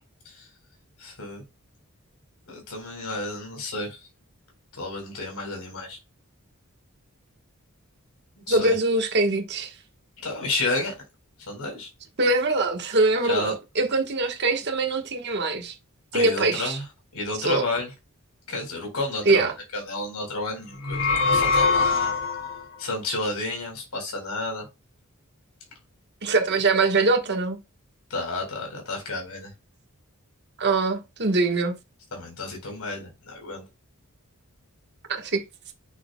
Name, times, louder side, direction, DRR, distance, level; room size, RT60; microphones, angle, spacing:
voice 1, 1.0-1.4 2.5-4.0 4.8-6.0 8.5-8.7 10.2-10.9 11.5-11.9 13.3-13.5 16.1-16.9 17.1-17.9 18.5-22.1 22.8-24.7 28.1-29.5 32.1-33.6, left 2 dB, 80° left, 4.2 m, -31 dB
voice 2, 8.5-9.7 12.2-15.7 16.1-16.8 17.4-17.6 19.2-19.5 26.2-27.6 30.6-31.8 35.1-35.4, right 3 dB, 50° right, 1.4 m, -23 dB
sound 1, 20.7-22.6, left 4 dB, 55° left, 2.1 m, -23 dB
9.3 x 6.6 x 2.3 m
head